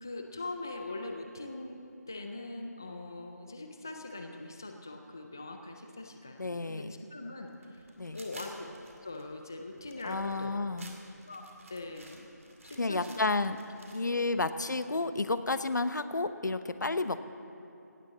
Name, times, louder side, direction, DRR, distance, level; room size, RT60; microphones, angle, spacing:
voice 1, 0.0-7.9 8.1-8.5 9.0-10.6 11.3-11.4 11.7-12.3 12.6-13.3 14.3-14.5, left 2 dB, 10° left, 4 dB, 0.3 m, -42 dB
voice 2, 6.4-6.9 8.0-8.2 10.0-10.9 12.8-13.6 13.9-17.2, left 3 dB, 85° left, 11 dB, 0.9 m, -31 dB
sound 1, 7.5-14.0, right 2 dB, 50° right, 2.3 m, -54 dB
17.5 x 8.6 x 7.4 m, 2.7 s
figure-of-eight pair, 175°, 10 cm